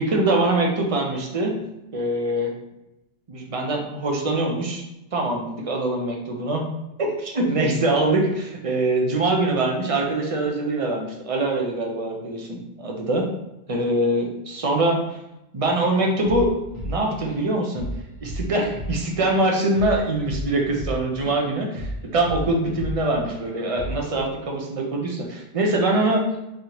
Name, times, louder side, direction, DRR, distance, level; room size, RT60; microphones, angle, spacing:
voice 1, 0.0-1.5 1.9-2.5 3.3-4.8 5.1-6.6 7.0-13.3 13.7-15.0 15.5-16.5 16.8-17.9 18.2-26.2, right 2 dB, 40° right, 1 dB, 0.6 m, -23 dB
Drum kit / Drum, 16.3-16.5 16.8-17.5 17.8-18.0 18.3-21.4 21.8-23.0 23.3-23.4 23.8-24.1, equal, 80° right, 1.4 m, -32 dB
3.9 x 3.2 x 2.9 m, 0.93 s
omnidirectional pair, 1.2 m